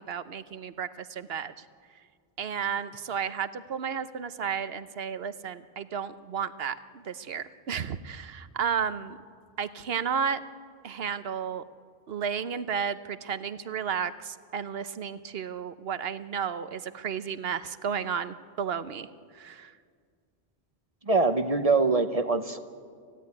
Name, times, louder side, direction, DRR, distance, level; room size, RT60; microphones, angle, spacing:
voice 1, 0.0-1.5 2.4-9.2 9.6-10.4 10.8-11.6 12.1-19.1 19.3-19.7, right 7 dB, 70° right, 12 dB, 1.1 m, -33 dB
voice 2, 21.1-22.6, right 3 dB, 40° right, 9 dB, 1.0 m, -23 dB
27.0 x 16.0 x 9.7 m, 2.1 s
omnidirectional pair, 1.0 m